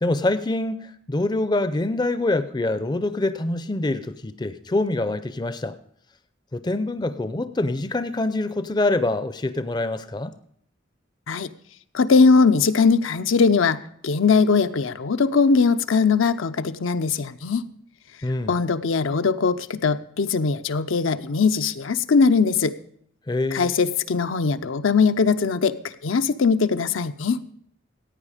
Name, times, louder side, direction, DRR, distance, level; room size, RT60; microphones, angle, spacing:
voice 1, 0.0-5.8 6.5-10.3 18.2-18.6 23.3-23.7, left 2 dB, 20° left, 12 dB, 0.5 m, -25 dB
voice 2, 11.9-13.8 14.0-17.6 18.5-22.8 23.5-27.4, left 5 dB, 80° left, 10 dB, 0.6 m, -20 dB
15.0 x 9.0 x 5.0 m, 0.66 s
head